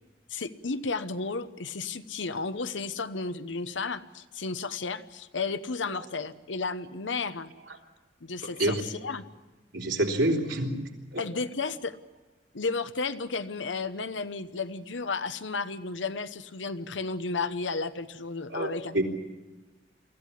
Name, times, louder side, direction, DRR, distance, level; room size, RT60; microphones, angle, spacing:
voice 1, 0.3-7.5 8.2-9.2 11.2-12.0 12.5-19.0, left 4 dB, 90° left, 12 dB, 1.0 m, -33 dB
voice 2, 9.7-10.8 11.1-11.2 18.5-19.0, right 1 dB, 85° right, 1 dB, 3.6 m, -27 dB
23.5 x 15.0 x 10.0 m, 1.2 s
head